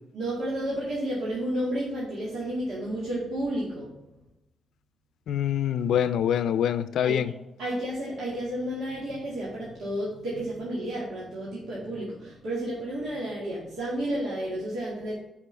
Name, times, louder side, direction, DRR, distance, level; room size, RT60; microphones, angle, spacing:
voice 1, 0.1-3.9 7.0-7.2 7.6-15.1, right 1 dB, 85° right, -6 dB, 2.1 m, -31 dB
voice 2, 5.3-7.3, left 9 dB, 75° left, 13 dB, 0.4 m, -25 dB
10.5 x 5.1 x 3.4 m, 0.91 s
wide cardioid pair, 165°, 0 cm